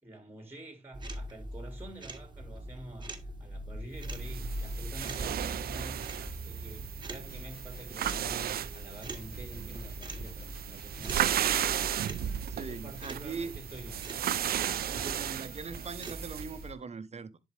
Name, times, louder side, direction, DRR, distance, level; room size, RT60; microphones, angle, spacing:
voice 1, 0.0-3.1 3.4-6.1 6.4-11.4 11.9-12.3 12.6-13.9, right 1 dB, 15° right, 2.6 m, -48 dB
sound 1, 0.9-16.7, right 1 dB, 30° right, 1.5 m, -42 dB
sound 2, 4.0-16.6, right 11 dB, 85° right, 0.4 m, -35 dB
sound 3, 4.5-6.8 7.3-16.8, left 1 dB, 85° left, 2.3 m, -53 dB
voice 2, 12.5-13.5 14.8-17.4, right 5 dB, 45° right, 1.0 m, -41 dB
10.0 x 4.6 x 3.3 m
cardioid pair, 90°, 15 cm